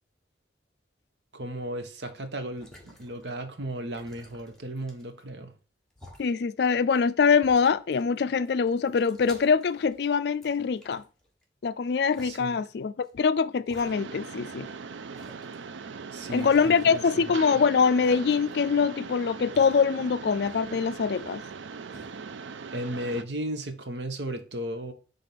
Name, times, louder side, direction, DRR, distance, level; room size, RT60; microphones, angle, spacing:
voice 1, 1.3-5.5 12.2-12.6 16.1-17.6 22.7-24.9, right 1 dB, 70° right, 1.0 m, -35 dB
sound 1, 2.4-3.5 3.9-5.3 5.9-6.3 6.9-7.0 7.4-8.2 8.5-10.1 10.4-11.4 12.1-12.4 13.0-13.1 13.7-14.4 14.7-14.8 15.2-15.5 16.3-17.5 18.0-18.7 19.0-21.6 21.9-22.1, equal, 5° left, 1.3 m, -52 dB
voice 2, 6.2-11.0 11.6-14.7 16.3-21.4, left 5 dB, 65° left, 0.4 m, -24 dB
Mechanisms, 13.7-23.2, right 5 dB, 90° right, 0.4 m, -40 dB
5.3 x 3.6 x 5.8 m
head